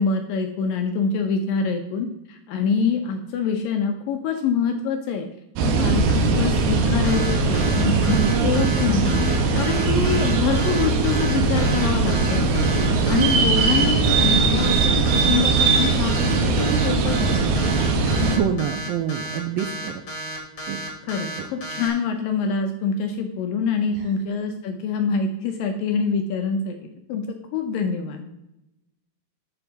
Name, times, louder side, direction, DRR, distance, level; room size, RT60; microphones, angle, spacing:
voice 1, 0.0-5.3 5.6-12.7 13.1-17.5 18.1-18.4 21.0-28.3, left 5 dB, 75° left, 5 dB, 2.1 m, -25 dB
sound 1, 5.6-18.4, right 4 dB, 70° right, 2.9 m, -20 dB
voice 2, 5.7-6.2 8.1-8.7 12.9-13.5 18.3-20.0 20.7-20.8 23.9-24.1, right 9 dB, 85° right, 6 dB, 2.1 m, -27 dB
sound 2, 7.0-21.9, right 1 dB, 35° left, 1.8 m, -33 dB
13.0 x 5.8 x 4.0 m, 0.90 s
omnidirectional pair, 4.8 m